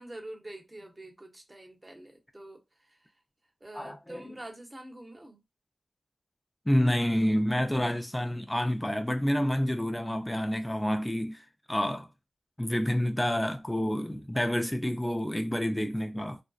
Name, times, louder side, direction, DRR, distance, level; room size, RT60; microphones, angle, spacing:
voice 1, 0.0-3.1 3.6-5.4, right 1 dB, 30° right, 0.8 m, -46 dB
voice 2, 3.7-4.2 6.7-12.1 12.6-16.4, equal, 15° left, 0.4 m, -28 dB
2.6 x 2.1 x 2.3 m
cardioid pair, 45°, 0 cm